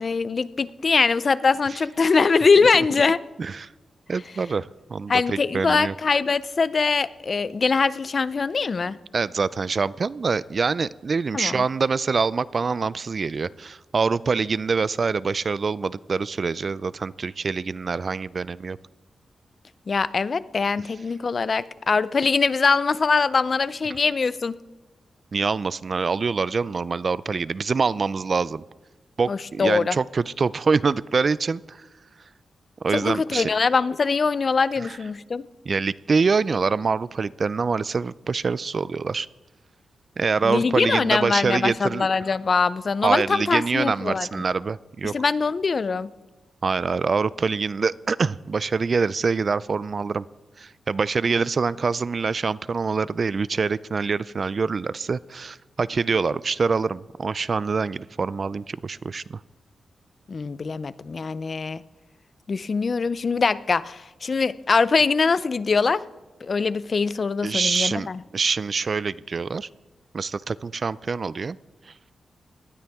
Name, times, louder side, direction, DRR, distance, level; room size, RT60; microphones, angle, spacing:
voice 1, 0.0-3.2 5.1-9.0 11.3-11.6 19.9-24.6 29.3-30.0 32.9-35.5 40.4-44.3 45.1-46.1 60.3-61.8 62.5-66.0 66.4-68.2, left 4 dB, 45° left, 17 dB, 0.4 m, -22 dB
voice 2, 3.4-3.7 4.1-5.9 9.1-18.8 25.3-28.6 29.2-31.8 32.8-33.5 34.8-34.9 35.7-39.3 40.2-42.1 43.0-45.1 46.6-50.2 50.6-59.4 67.4-68.1 68.3-69.7 70.1-71.6 71.9-72.0, right 4 dB, 45° right, 19 dB, 0.3 m, -25 dB
19.0 x 12.5 x 3.5 m, 1.2 s
wide cardioid pair, 105°, 0 cm